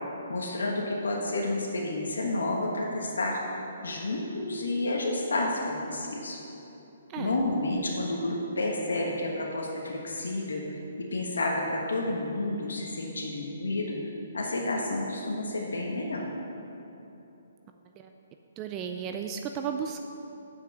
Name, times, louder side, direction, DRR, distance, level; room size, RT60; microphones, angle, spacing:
voice 1, 0.3-3.4 3.8-6.4 7.2-10.6 11.1-14.0 14.3-16.3, left 2 dB, 90° left, -1 dB, 1.3 m, -30 dB
voice 2, 18.6-20.0, right 7 dB, 25° right, 5 dB, 0.4 m, -34 dB
7.8 x 5.7 x 7.6 m, 2.9 s
hypercardioid pair, 150°, 0 cm